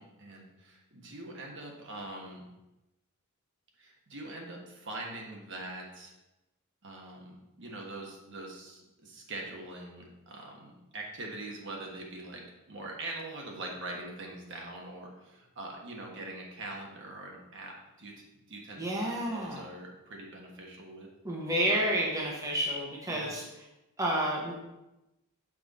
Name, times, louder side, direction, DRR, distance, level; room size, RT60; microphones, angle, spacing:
voice 1, 0.0-2.4 3.8-6.1 6.8-18.2 18.5-21.1 21.7-22.0 23.1-23.3, right 2 dB, 55° right, 0 dB, 1.3 m, -43 dB
voice 2, 18.8-19.6 21.2-23.4 24.0-24.5, right 1 dB, 15° right, -3 dB, 1.0 m, -30 dB
6.0 x 4.5 x 5.3 m, 0.97 s
head